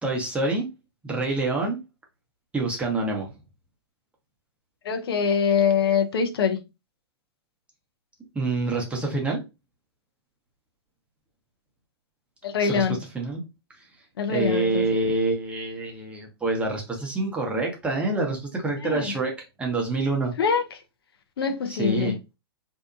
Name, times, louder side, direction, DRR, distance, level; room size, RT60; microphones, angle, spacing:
voice 1, 0.0-0.7 1.0-1.8 2.5-3.3 8.3-9.4 12.6-12.9 13.1-13.4 14.3-20.3 21.7-22.2, right 2 dB, 10° right, 0.8 m, -26 dB
voice 2, 4.8-6.6 12.4-13.0 14.2-14.8 18.8-19.1 20.4-20.6 21.4-22.2, left 6 dB, 65° left, 0.5 m, -23 dB
2.7 x 2.1 x 2.5 m
hypercardioid pair, 120°, 14 cm